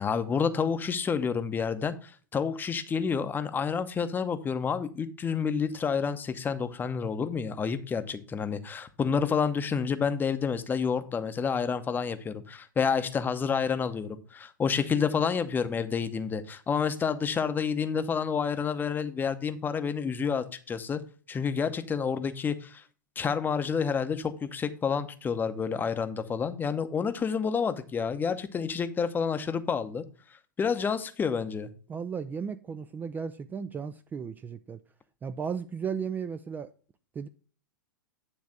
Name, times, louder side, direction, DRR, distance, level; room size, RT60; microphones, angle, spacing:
voice 1, 0.0-21.0 21.3-22.8 23.2-30.0 30.6-31.7, left 6 dB, 15° left, 0.8 m, -29 dB
voice 2, 31.9-34.8 35.2-36.7 37.2-37.3, right 6 dB, 15° right, 0.4 m, -35 dB
9.7 x 3.4 x 6.3 m
figure-of-eight pair, 100°, 11 cm